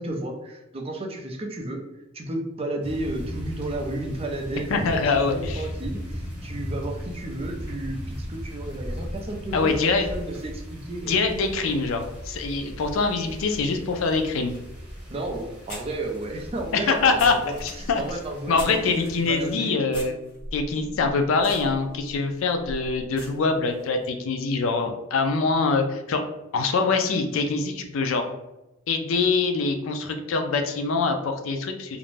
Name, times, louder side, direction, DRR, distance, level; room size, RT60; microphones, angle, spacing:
voice 1, 0.0-1.8 2.1-9.8 10.1-11.1 15.1-20.0, right 2 dB, 25° right, 2 dB, 0.4 m, -33 dB
sound 1, 2.8-19.5, equal, 5° right, 0.8 m, -37 dB
voice 2, 4.7-5.7 9.5-10.1 11.1-14.5 16.7-17.3 17.6-18.0 18.5-20.2 20.5-26.2 26.5-28.2 28.9-32.0, left 4 dB, 65° left, 5 dB, 0.4 m, -24 dB
sound 2, 14.6-14.7 15.7-19.2 19.9-23.8, equal, 40° left, 1.2 m, -40 dB
2.5 x 2.1 x 3.1 m, 0.95 s
head